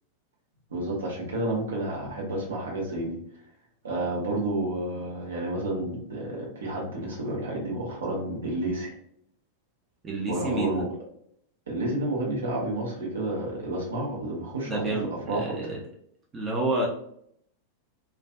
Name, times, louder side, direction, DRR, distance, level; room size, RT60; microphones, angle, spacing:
voice 1, 0.7-3.2 3.8-8.9 10.3-10.9 11.7-14.8 15.3-15.6, right 1 dB, 65° right, -2 dB, 0.7 m, -30 dB
voice 2, 10.0-10.8 14.6-15.8 16.3-16.9, right 2 dB, 20° right, -3 dB, 0.6 m, -29 dB
2.5 x 2.3 x 2.3 m, 0.70 s
figure-of-eight pair, 90°, 0 cm